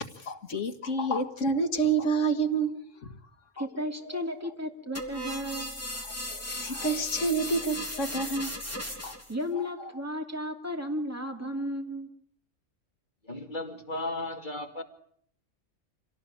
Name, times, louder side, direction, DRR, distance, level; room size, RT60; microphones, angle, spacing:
voice 1, 0.2-3.1 3.6-4.2 6.0-8.6 9.0-9.2 9.5-9.9, right 3 dB, 70° left, 2.0 m, -29 dB
voice 2, 3.6-5.8 9.3-12.1, equal, 10° right, 2.6 m, -34 dB
sound 1, 4.9-9.3, left 1 dB, 10° left, 3.5 m, -37 dB
voice 3, 13.2-14.8, left 2 dB, 40° left, 2.7 m, -35 dB
26.0 x 18.0 x 8.7 m
omnidirectional pair, 1.3 m